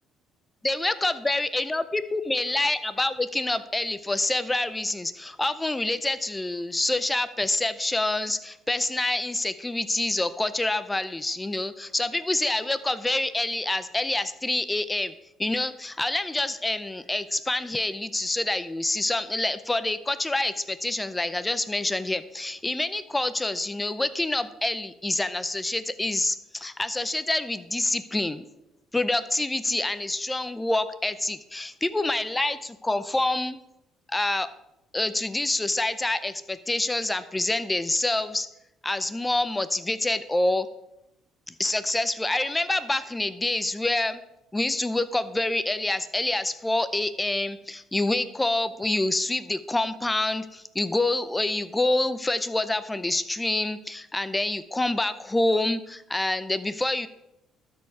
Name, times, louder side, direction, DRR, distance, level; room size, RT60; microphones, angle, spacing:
voice 1, 0.6-15.1 15.4-28.4 28.9-33.6 34.1-34.5 34.9-38.5 38.8-40.7 41.5-44.2 44.5-57.1, left 2 dB, 15° left, 13 dB, 0.5 m, -27 dB
12.5 x 4.5 x 4.8 m, 0.87 s
cardioid pair, 95°, 0 cm